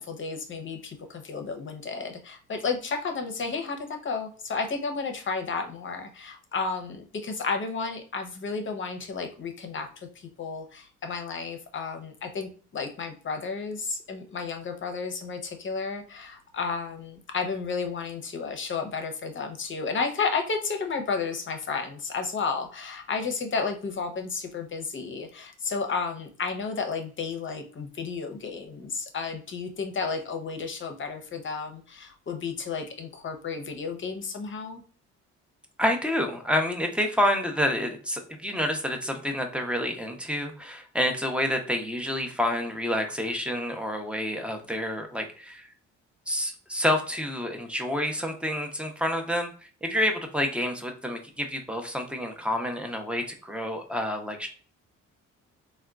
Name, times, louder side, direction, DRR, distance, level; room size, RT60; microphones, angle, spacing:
voice 1, 0.0-9.9 10.2-34.8, left 4 dB, 40° left, 5 dB, 0.7 m, -32 dB
voice 2, 35.8-45.7 46.3-49.5 49.8-54.5, left 1 dB, 5° right, 4 dB, 0.6 m, -28 dB
3.5 x 2.2 x 2.3 m, 0.40 s
cardioid pair, 90°, 30 cm